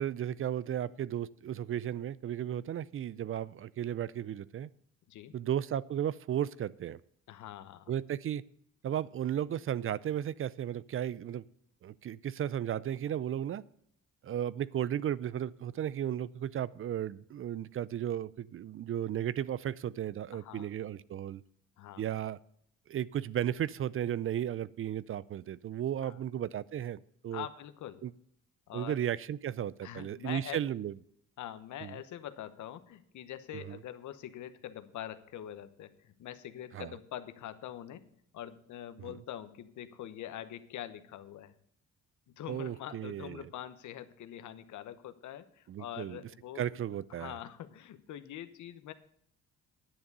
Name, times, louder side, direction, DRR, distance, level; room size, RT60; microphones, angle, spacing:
voice 1, 0.0-4.7 5.3-7.0 7.9-8.4 8.8-11.4 11.8-13.6 14.2-21.4 22.0-22.4 22.9-27.5 28.0-28.1 28.7-30.9 31.8-32.0 33.7-33.8 36.7-36.9 39.0-39.2 42.5-43.5 45.7-46.2 46.6-47.4, right 10 dB, 45° right, 20 dB, 0.4 m, -34 dB
voice 2, 7.3-7.9 20.3-20.7 21.8-22.0 26.0-26.2 27.3-28.0 28.7-29.0 29.8-30.6 31.4-41.6 42.4-46.6 47.1-48.9, left 11 dB, 75° left, 11 dB, 1.0 m, -44 dB
10.5 x 7.1 x 6.7 m, 0.67 s
cardioid pair, 90°, 30 cm